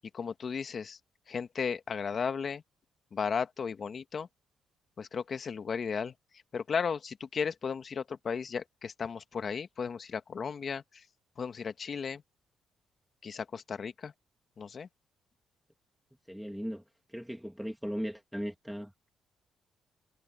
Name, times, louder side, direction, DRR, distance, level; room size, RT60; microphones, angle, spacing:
voice 1, 0.1-1.0 1.3-2.6 3.1-4.3 5.0-6.1 6.5-11.0 11.4-12.2 13.2-14.1 14.6-14.9, left 6 dB, 45° left, 1.6 m, -35 dB
voice 2, 16.3-16.8 17.1-19.1, equal, ahead, 2.0 m, -38 dB
cardioid pair, 90°, 0 cm